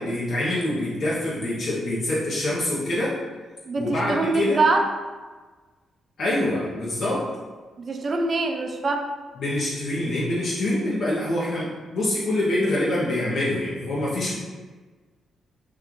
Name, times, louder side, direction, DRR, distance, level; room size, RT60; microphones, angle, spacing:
voice 1, 0.0-3.2 3.8-4.6 6.2-7.2 9.4-14.3, left 1 dB, 65° left, -7 dB, 0.8 m, -25 dB
voice 2, 3.7-4.8 7.8-9.1, right 3 dB, 50° right, 3 dB, 0.5 m, -24 dB
3.1 x 2.4 x 3.7 m, 1.3 s
cardioid pair, 70°, 0 cm